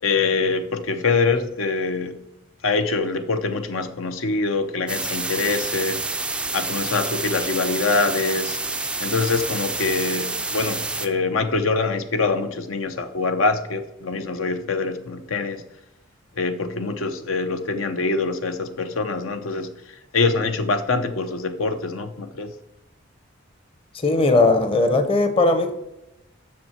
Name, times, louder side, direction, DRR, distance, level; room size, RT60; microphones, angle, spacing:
voice 1, 0.0-2.2 2.6-6.0 6.5-8.6 9.0-15.6 16.4-19.7 20.1-22.5, left 3 dB, 80° left, 8 dB, 0.7 m, -24 dB
sound 1, 4.9-11.1, right 3 dB, 5° right, 0.3 m, -28 dB
voice 2, 23.9-25.7, left 2 dB, 25° left, 8 dB, 0.7 m, -18 dB
7.5 x 6.4 x 4.4 m, 0.90 s
head